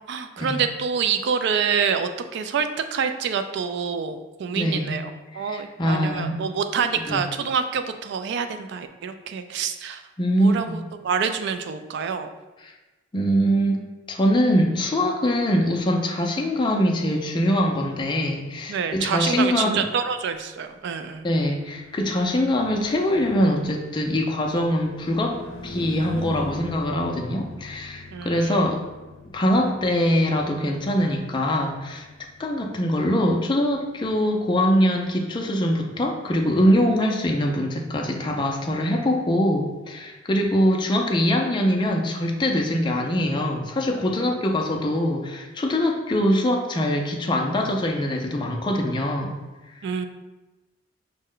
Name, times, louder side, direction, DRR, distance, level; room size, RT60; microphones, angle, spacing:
voice 1, 0.0-10.0 10.4-12.3 18.7-21.2 28.1-28.7 49.8-50.1, right 6 dB, 60° right, 9 dB, 0.3 m, -27 dB
voice 2, 4.6-5.0 5.3-6.4 7.1-7.2 10.2-10.8 12.6-12.7 13.1-19.8 21.2-28.8 29.3-32.1 32.4-49.4 49.7-49.9, equal, 25° left, 2 dB, 0.4 m, -23 dB
Car passing by / Truck, 21.6-35.3, left 2 dB, 75° left, 0.7 m, -43 dB
5.5 x 2.1 x 3.7 m, 1.1 s
head